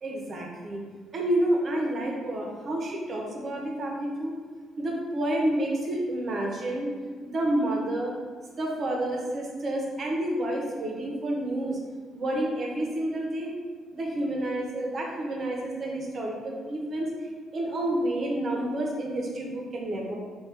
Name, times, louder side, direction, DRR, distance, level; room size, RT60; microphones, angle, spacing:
voice 1, 0.0-0.8 1.1-4.3 4.8-7.0 7.2-8.1 8.6-11.8 12.1-13.5 13.9-20.2, right 1 dB, 45° right, -1 dB, 0.9 m, -29 dB
5.1 x 2.6 x 3.4 m, 1.5 s
cardioid pair, 90°, 0 cm